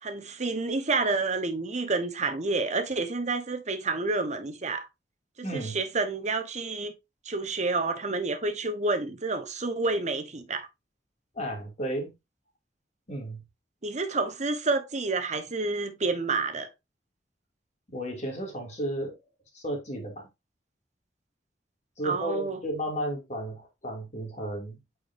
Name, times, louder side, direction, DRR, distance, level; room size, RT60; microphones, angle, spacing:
voice 1, 0.0-4.9 5.4-6.9 7.2-10.7 13.8-16.7 22.0-22.6, right 3 dB, 45° right, 1.1 m, -29 dB
voice 2, 5.4-5.8 11.3-12.1 13.1-13.4 17.9-19.2 19.5-20.3 22.0-24.8, right 1 dB, 40° left, 2.6 m, -33 dB
8.4 x 4.9 x 2.7 m
head